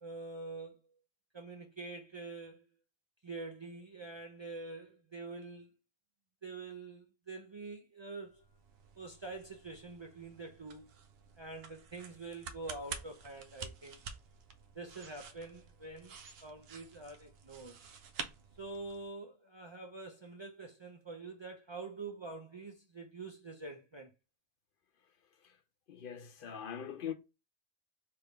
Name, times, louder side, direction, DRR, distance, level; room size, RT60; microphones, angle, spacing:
voice 1, 0.0-0.8 1.3-2.6 3.2-5.7 6.4-8.4 9.0-10.9 11.4-14.0 14.7-16.2 16.4-17.8 18.6-24.1, right 3 dB, 40° right, 0.4 m, -46 dB
sound 1, 8.3-19.1, right 6 dB, 80° right, 0.8 m, -49 dB
voice 2, 25.9-27.1, left 8 dB, 65° left, 0.7 m, -41 dB
3.4 x 2.6 x 4.3 m
omnidirectional pair, 1.0 m